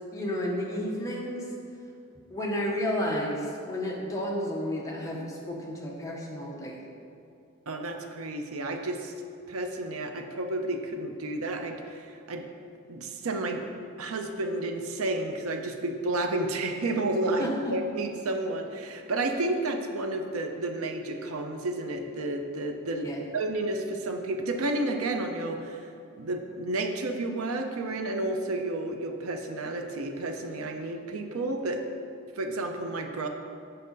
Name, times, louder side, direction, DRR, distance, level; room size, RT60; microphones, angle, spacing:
voice 1, 0.1-1.4 2.3-6.8 17.4-17.8 23.0-23.2, left 1 dB, 15° left, -3 dB, 0.9 m, -31 dB
voice 2, 7.7-9.1 9.5-12.5 12.9-13.7 14.0-23.1 23.3-25.9 26.2-31.8 32.4-33.3, right 2 dB, 85° right, 5 dB, 0.6 m, -31 dB
7.7 x 5.5 x 3.9 m, 2.6 s
head